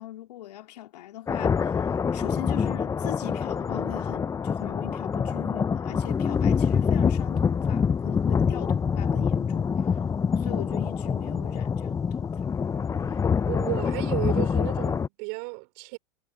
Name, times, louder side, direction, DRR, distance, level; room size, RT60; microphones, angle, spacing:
voice 1, 0.0-10.0 10.4-12.5, left 13 dB, 75° left, 2.9 m, -40 dB
sound 1, 1.3-15.1, left 6 dB, 15° left, 0.6 m, -26 dB
voice 2, 13.5-16.0, right 36 dB, 55° right, 3.5 m, -33 dB
hypercardioid pair, 100°, 21 cm